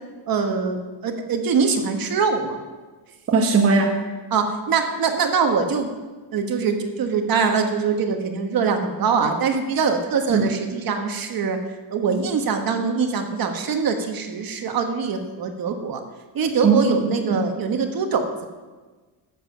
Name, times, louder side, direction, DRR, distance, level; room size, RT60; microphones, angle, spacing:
voice 1, 0.3-2.6 4.3-5.9 6.3-11.6 11.9-16.0 16.3-18.5, right 5 dB, 50° right, 5 dB, 1.2 m, -23 dB
voice 2, 3.3-4.0 10.3-10.5 16.6-17.4, right 4 dB, 30° right, 2 dB, 1.0 m, -19 dB
10.5 x 7.2 x 6.7 m, 1.3 s
cardioid pair, 170°, 45 cm